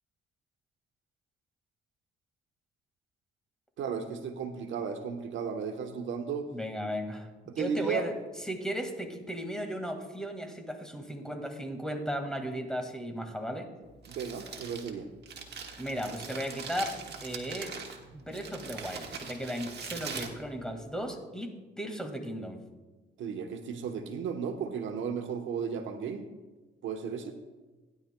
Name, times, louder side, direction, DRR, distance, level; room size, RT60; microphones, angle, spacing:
voice 1, 3.8-6.5 7.5-8.1 14.1-15.1 23.2-26.3 26.8-27.4, right 6 dB, 75° right, 5 dB, 1.0 m, -34 dB
voice 2, 6.5-7.3 7.6-13.7 15.8-17.7 18.1-21.5 21.8-22.6, equal, 5° left, 4 dB, 1.9 m, -36 dB
Crumpling crinkling, 13.8-21.1, right 5 dB, 60° right, 1.5 m, -42 dB
16.0 x 10.5 x 2.2 m, 1.2 s
cardioid pair, 90°, 20 cm